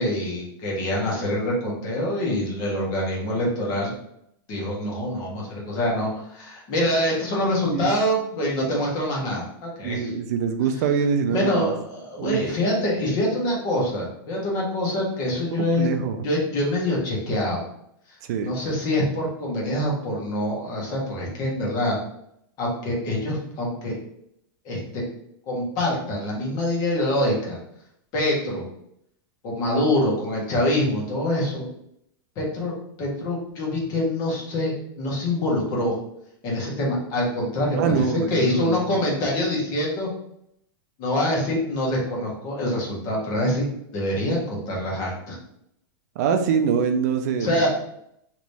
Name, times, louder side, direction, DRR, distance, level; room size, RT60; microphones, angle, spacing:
voice 1, 0.0-3.9 4.5-10.1 11.3-15.9 16.2-17.6 18.4-22.0 22.6-24.0 24.6-25.0 25.5-27.6 28.1-28.6 29.4-31.7 32.4-35.9 36.4-40.1 41.0-43.7 43.9-45.4 47.4-47.7, left 1 dB, 30° left, -3 dB, 1.1 m, -25 dB
voice 2, 9.8-11.7 12.2-12.4 15.5-16.2 18.3-18.5 37.8-39.0 46.2-47.7, right 6 dB, 45° right, 7 dB, 0.4 m, -24 dB
3.3 x 2.9 x 2.7 m, 0.75 s
supercardioid pair, 165°, 12 cm